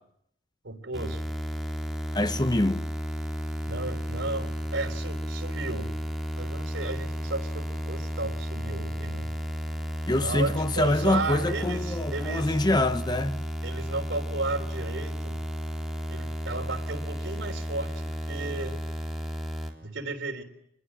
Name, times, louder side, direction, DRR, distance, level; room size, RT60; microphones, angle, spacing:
voice 1, 0.6-1.2 3.6-5.9 6.4-9.3 10.2-12.6 13.6-15.4 16.1-18.8 19.8-20.4, right 3 dB, 75° right, 3.6 m, -34 dB
sound 1, 0.9-19.7, equal, ahead, 3.6 m, -33 dB
voice 2, 2.1-2.9 10.1-13.4, left 1 dB, 20° left, 0.9 m, -25 dB
27.5 x 21.5 x 7.4 m
head